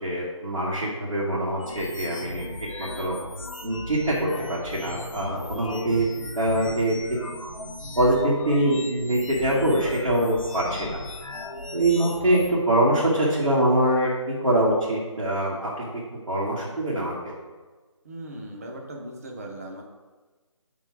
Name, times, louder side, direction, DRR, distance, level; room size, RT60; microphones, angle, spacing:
voice 1, 0.0-2.5 2.8-3.1 3.6-6.1 6.4-7.0 8.0-11.0 11.7-15.8 16.3-17.3, right 1 dB, 90° right, -8 dB, 1.9 m, -24 dB
sound 1, 1.6-12.5, left 2 dB, 85° left, 1.0 m, -37 dB
voice 2, 18.0-19.8, right 1 dB, 30° right, 1 dB, 0.7 m, -38 dB
5.9 x 3.7 x 4.6 m, 1.3 s
figure-of-eight pair, 165°, 17 cm